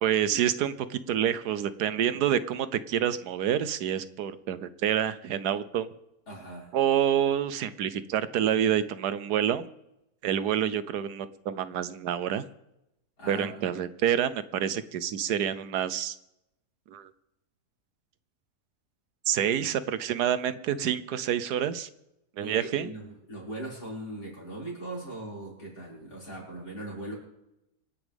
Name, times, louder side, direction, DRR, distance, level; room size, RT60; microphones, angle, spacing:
voice 1, 0.0-5.9 6.7-9.7 10.2-12.4 13.3-16.1 16.9-17.1 19.3-21.9 22.4-22.9, right 9 dB, 85° right, 14 dB, 1.3 m, -27 dB
voice 2, 6.3-6.7 13.2-13.6 22.4-27.1, right 1 dB, 80° left, -5 dB, 6.2 m, -39 dB
26.0 x 9.7 x 3.5 m, 0.86 s
omnidirectional pair, 1.7 m